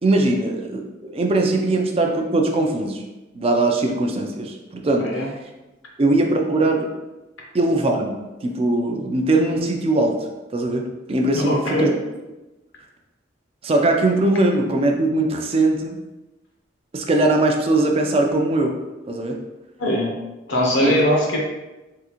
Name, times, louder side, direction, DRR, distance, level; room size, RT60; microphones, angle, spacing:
voice 1, 0.0-3.0 3.3-5.1 6.0-6.9 7.5-10.2 10.5-10.8 11.1-11.9 13.6-16.0 16.9-18.7 19.1-19.4 20.8-20.9, right 2 dB, 30° right, 2 dB, 0.3 m, -20 dB
voice 2, 11.3-12.0 19.8-20.1 20.5-21.4, equal, 75° left, -2 dB, 0.8 m, -21 dB
3.6 x 2.4 x 2.9 m, 1.1 s
head